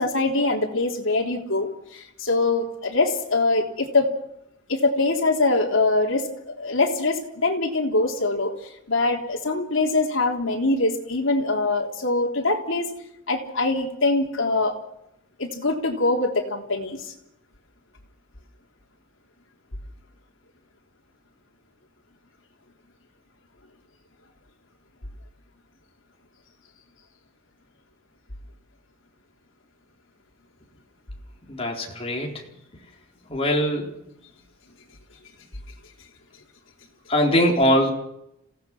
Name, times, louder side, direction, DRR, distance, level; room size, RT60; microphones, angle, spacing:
voice 1, 0.0-4.1 4.7-12.9 13.3-14.8 15.4-17.1, left 2 dB, 75° left, 1 dB, 3.5 m, -23 dB
voice 2, 31.5-32.4 33.3-33.9 37.1-37.9, equal, 30° left, 0 dB, 4.1 m, -21 dB
27.5 x 17.0 x 6.2 m, 0.81 s
head